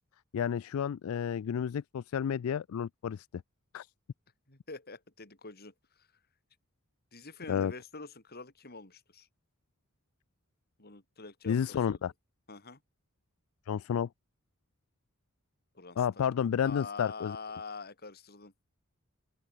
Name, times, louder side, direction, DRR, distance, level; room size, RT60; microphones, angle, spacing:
voice 1, 0.3-3.3 3.7-3.9 7.5-7.7 11.5-12.1 13.7-14.1 16.0-17.4, left 8 dB, 75° left, 0.3 m, -31 dB
voice 2, 4.5-6.1 7.1-9.3 10.8-12.0 12.5-12.8 15.7-16.3 16.6-18.5, left 4 dB, 50° left, 4.4 m, -46 dB
open air
head